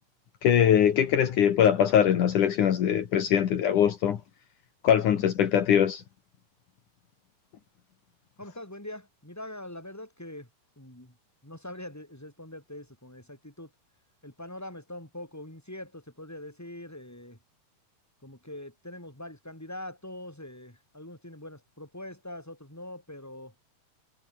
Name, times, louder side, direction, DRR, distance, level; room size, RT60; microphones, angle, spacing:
voice 1, 0.4-4.2 4.8-6.0, left 9 dB, 65° left, 3.2 m, -22 dB
voice 2, 8.4-10.5 10.8-11.2 11.4-13.7 14.2-17.4 18.2-23.5, left 1 dB, 5° left, 6.2 m, -43 dB
omnidirectional pair, 3.9 m